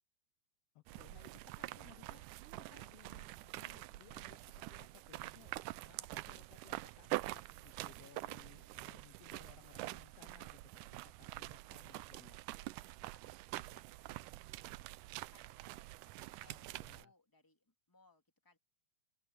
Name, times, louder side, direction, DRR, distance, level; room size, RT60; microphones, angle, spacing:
voice 1, 0.7-5.6 5.9-12.4 16.5-17.1, left 11 dB, 90° left, 1.4 m, -63 dB
sound 1, 0.9-17.0, right 19 dB, 80° right, 2.0 m, -46 dB
voice 2, 12.5-15.7 16.0-18.6, left 2 dB, 5° left, 2.3 m, -71 dB
open air
omnidirectional pair, 4.0 m